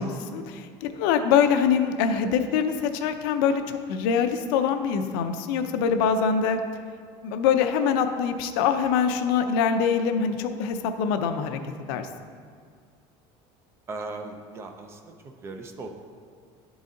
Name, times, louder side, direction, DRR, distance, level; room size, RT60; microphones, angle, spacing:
voice 1, 0.0-6.6 7.2-11.6 11.9-12.1, left 7 dB, 85° left, 8 dB, 0.5 m, -24 dB
voice 2, 13.9-15.1 15.4-15.9, right 3 dB, 20° right, 5 dB, 0.5 m, -37 dB
11.0 x 4.0 x 3.7 m, 2.1 s
cardioid pair, 170°, 12 cm